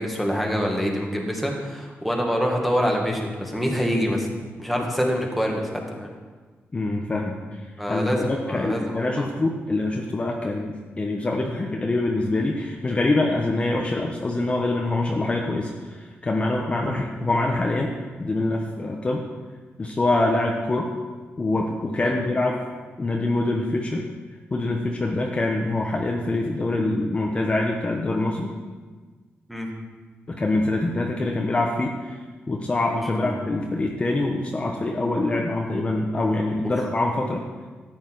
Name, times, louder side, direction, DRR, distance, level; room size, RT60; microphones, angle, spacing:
voice 1, 0.0-4.3 4.6-6.1 7.8-9.3 22.0-22.2 29.5-29.7 33.1-33.3 36.6-36.7, equal, ahead, 0 dB, 1.9 m, -26 dB
voice 2, 6.7-7.6 7.9-17.9 18.2-19.3 19.8-20.9 21.4-22.6 23.0-24.1 24.5-28.5 30.3-32.2 32.5-37.4, left 2 dB, 30° left, 0 dB, 1.0 m, -25 dB
13.5 x 9.4 x 4.7 m, 1.4 s
wide cardioid pair, 140°, 4 cm